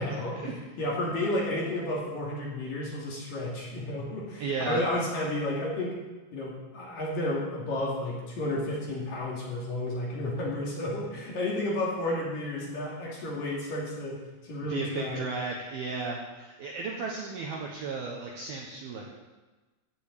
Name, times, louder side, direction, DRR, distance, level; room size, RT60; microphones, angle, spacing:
voice 1, 0.0-6.0 6.3-15.3, left 1 dB, 50° left, -4 dB, 3.6 m, -32 dB
voice 2, 4.4-4.9 14.7-19.1, right 4 dB, 70° right, -1 dB, 2.4 m, -34 dB
15.5 x 6.8 x 8.4 m, 1.2 s
omnidirectional pair, 5.9 m